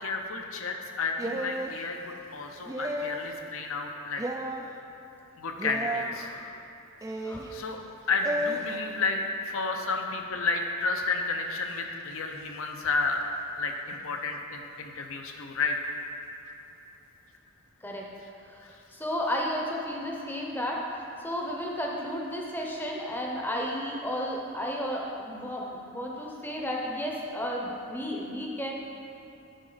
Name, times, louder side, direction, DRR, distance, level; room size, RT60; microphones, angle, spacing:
voice 1, 0.0-4.2 5.4-6.3 7.5-7.8 8.1-9.2 9.4-13.2 13.6-15.9, left 3 dB, 70° left, 3 dB, 0.7 m, -31 dB
sound 1, 1.2-1.8 2.7-3.3 4.2-4.6 5.6-6.1 7.0-7.5 8.2-8.6, right 1 dB, 15° right, 0.3 m, -32 dB
voice 2, 6.2-6.6 7.2-7.5 8.7-8.9 9.8-9.9 17.8-18.1 18.4-28.7, equal, 10° left, -2 dB, 0.7 m, -33 dB
10.0 x 5.1 x 4.0 m, 2.9 s
head